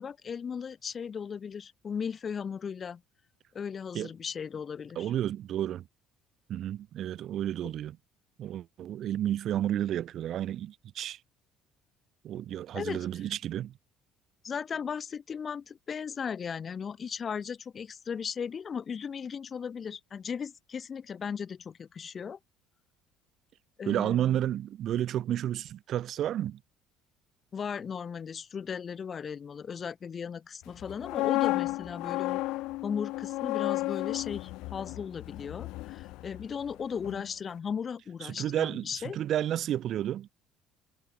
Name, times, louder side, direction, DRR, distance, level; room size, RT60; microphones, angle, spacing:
voice 1, 0.0-3.0 3.5-5.1 12.7-13.1 14.4-22.4 23.8-24.4 27.5-32.4 32.8-39.2, left 6 dB, 40° left, 1.9 m, -37 dB
voice 2, 4.9-5.9 6.5-8.0 8.4-11.2 12.2-13.7 23.8-26.6 38.2-40.3, right 11 dB, 60° right, 3.5 m, -31 dB
sound 1, 30.8-36.7 37.0-37.3, left 19 dB, 75° left, 0.3 m, -33 dB
supercardioid pair, 80°, 0 cm